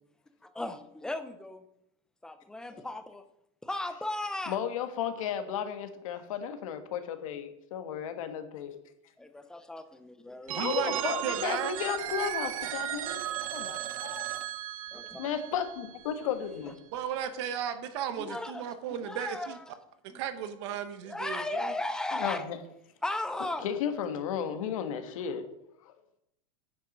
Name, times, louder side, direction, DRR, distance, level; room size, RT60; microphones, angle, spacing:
voice 1, 0.4-1.6 2.2-3.2 3.6-4.6 9.2-10.8 14.9-15.3 16.7-16.8 18.2-19.6 20.1-20.2 21.0-22.5 23.0-23.7, left 2 dB, 5° left, 0.5 m, -36 dB
voice 2, 4.5-8.7 10.6-13.2 13.5-14.3 15.2-16.7 22.1-22.6 23.6-25.5 25.8-25.9, left 8 dB, 80° left, 1.5 m, -34 dB
voice 3, 10.5-11.7 16.9-19.6 20.1-21.7, right 9 dB, 55° right, 1.0 m, -35 dB
Telephone, 10.5-16.3, right 11 dB, 85° right, 0.9 m, -36 dB
9.5 x 7.3 x 5.3 m
supercardioid pair, 170°, 17 cm